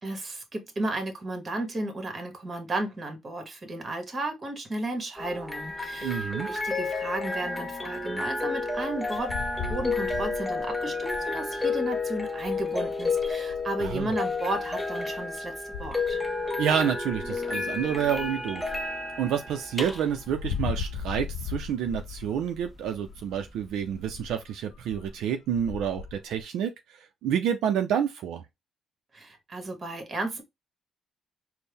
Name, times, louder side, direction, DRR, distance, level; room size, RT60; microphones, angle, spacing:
voice 1, 0.0-9.3 9.7-15.5 15.8-16.2 29.1-30.4, right 2 dB, 35° right, 1.3 m, -34 dB
sound 1, 5.2-24.3, left 3 dB, 10° left, 0.6 m, -32 dB
voice 2, 6.0-6.5 13.8-14.1 16.6-18.6 19.2-26.7 27.2-28.4, right 8 dB, 85° right, 0.4 m, -28 dB
sound 2, 8.6-11.4 12.4-14.6 15.1-15.3 15.7-16.5 16.9-18.3 18.6-18.9 19.4-19.5 19.7-25.3 25.5-26.4, left 6 dB, 80° left, 0.4 m, -38 dB
4.3 x 2.1 x 3.4 m
cardioid pair, 90°, 0 cm